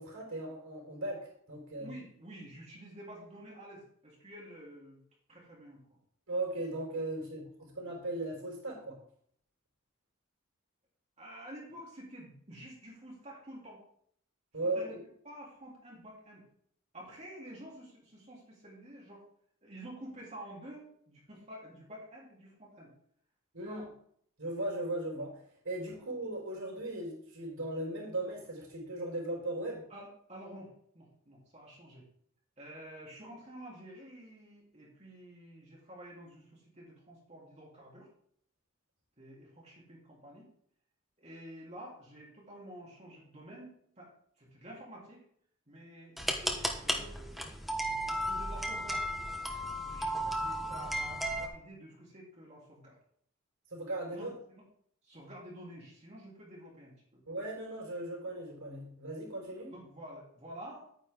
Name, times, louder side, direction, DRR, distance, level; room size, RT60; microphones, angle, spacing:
voice 1, 0.0-1.9 6.3-9.0 14.5-15.0 23.5-23.9 24.4-29.9 53.7-54.3 57.3-59.7, right 2 dB, 90° right, -2 dB, 4.6 m, -37 dB
voice 2, 1.8-5.0 5.3-6.0 11.2-13.8 14.6-15.0 15.2-16.4 16.9-19.2 19.6-22.9 23.6-23.9 25.9-26.0 29.9-32.1 32.6-38.1 39.2-40.5 41.2-44.1 44.4-45.2 45.7-49.1 49.7-53.0 54.1-54.6 55.0-57.2 59.7-60.8, right 1 dB, 30° right, -4 dB, 3.5 m, -50 dB
sound 1, 46.2-51.5, equal, ahead, 1.0 m, -34 dB
9.7 x 9.4 x 3.7 m, 0.65 s
head